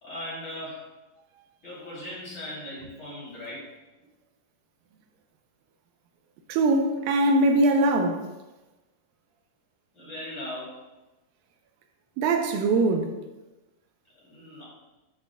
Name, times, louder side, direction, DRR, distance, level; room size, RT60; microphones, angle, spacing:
voice 1, 0.0-0.8 1.6-3.7 9.9-10.8 14.2-14.6, left 1 dB, 35° left, 3.3 m, -38 dB
voice 2, 6.5-8.2 12.2-13.1, right 2 dB, 85° right, 2.4 m, -22 dB
12.0 x 5.9 x 2.2 m
omnidirectional pair, 4.0 m